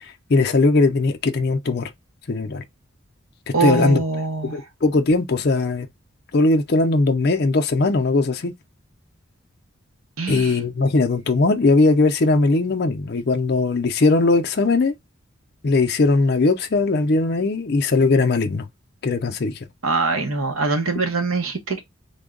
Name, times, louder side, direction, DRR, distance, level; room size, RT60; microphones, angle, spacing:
voice 1, 0.0-1.9 2.3-2.6 3.5-4.0 4.4-5.9 6.3-8.5 10.3-14.9 15.6-18.7 19.0-19.6, left 3 dB, 50° left, 0.5 m, -19 dB
voice 2, 3.5-4.6 10.2-10.6 19.8-21.8, right 4 dB, 85° right, 0.9 m, -23 dB
3.5 x 2.2 x 3.7 m
head